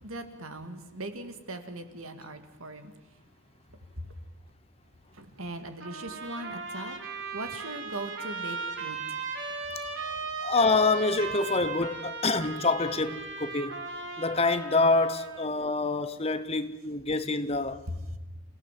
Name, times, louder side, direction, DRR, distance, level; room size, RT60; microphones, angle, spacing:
voice 1, 0.0-2.9 4.0-4.1 5.1-6.9 7.3-9.2 17.9-18.2, right 1 dB, 80° right, 2.4 m, -39 dB
Trumpet, 5.8-15.5, right 4 dB, 60° right, 3.4 m, -37 dB
voice 2, 10.4-13.7 14.2-17.8, left 3 dB, 30° left, 0.9 m, -26 dB
29.0 x 16.5 x 7.7 m
head